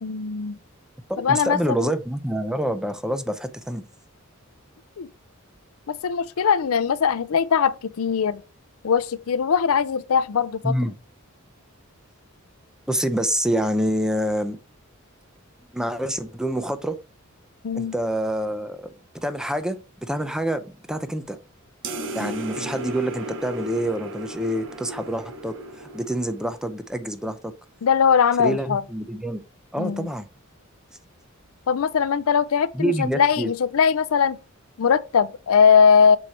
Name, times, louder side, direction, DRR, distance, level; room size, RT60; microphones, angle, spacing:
voice 1, 0.0-0.6 1.2-1.6 5.0-5.1 5.9-8.4 8.8-10.7 17.6-17.9 22.2-22.3 27.8-28.8 29.8-30.1 31.7-34.4 34.8-36.2, left 6 dB, 75° left, 0.5 m, -20 dB
voice 2, 1.1-3.8 10.6-10.9 12.9-14.6 15.7-17.0 17.7-18.9 19.2-20.6 20.9-21.4 22.1-27.5 28.4-29.4 29.7-30.3 32.7-33.5, right 1 dB, 5° right, 0.6 m, -26 dB
sound 1, 21.8-26.7, right 1 dB, 60° right, 1.4 m, -35 dB
6.4 x 4.5 x 4.2 m
head